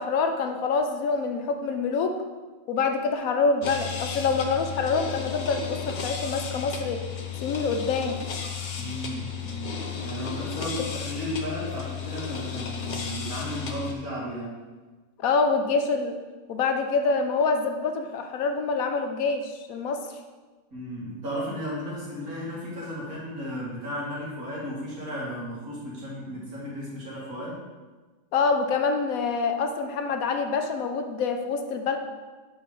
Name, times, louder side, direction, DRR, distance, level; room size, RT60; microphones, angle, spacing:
voice 1, 0.0-2.1 2.7-7.0 7.4-8.2 15.2-16.2 16.5-20.0 28.3-32.0, left 4 dB, 80° left, 6 dB, 1.1 m, -26 dB
sound 1, 3.6-13.9, left 7 dB, 50° left, 0.6 m, -34 dB
voice 2, 8.8-14.6 20.7-27.6, equal, 85° right, -6 dB, 2.6 m, -34 dB
5.4 x 4.6 x 5.9 m, 1.3 s
omnidirectional pair, 1.5 m